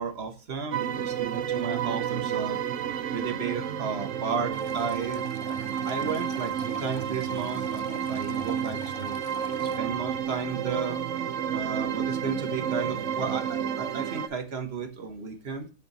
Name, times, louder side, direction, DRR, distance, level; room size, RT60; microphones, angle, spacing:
voice 1, 0.0-2.6 3.1-5.3 5.8-9.2 9.8-11.0 11.5-15.7, right 5 dB, 40° right, 6 dB, 1.1 m, -33 dB
sound 1, 0.7-14.3, right 8 dB, 85° right, 0.6 m, -31 dB
Stream, 4.5-9.8, left 9 dB, 80° left, 0.7 m, -47 dB
8.2 x 4.4 x 4.0 m, 0.35 s
omnidirectional pair, 2.1 m